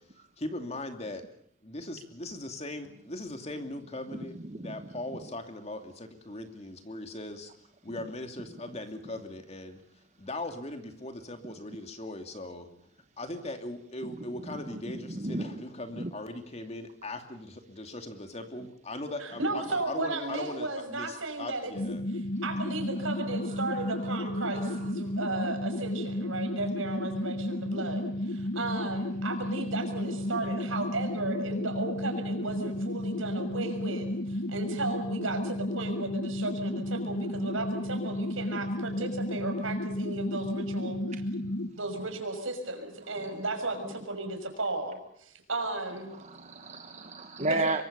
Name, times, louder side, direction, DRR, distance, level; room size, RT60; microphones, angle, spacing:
voice 1, 0.4-1.3 1.6-7.5 7.8-9.8 10.2-12.7 13.2-22.0, left 1 dB, 30° left, 6 dB, 2.7 m, -39 dB
voice 2, 4.4-4.9 14.5-15.6 16.0-16.1 23.1-24.9 37.4-37.5 41.4-41.6 43.2-43.3 46.1-47.8, right 2 dB, 35° right, 6 dB, 1.2 m, -35 dB
voice 3, 19.2-21.7 22.4-41.0 41.7-46.1 47.4-47.8, right 2 dB, 85° right, 6 dB, 6.0 m, -35 dB
sound 1, 21.7-41.7, left 1 dB, 60° left, 1.3 m, -33 dB
25.0 x 23.5 x 6.8 m, 0.69 s
head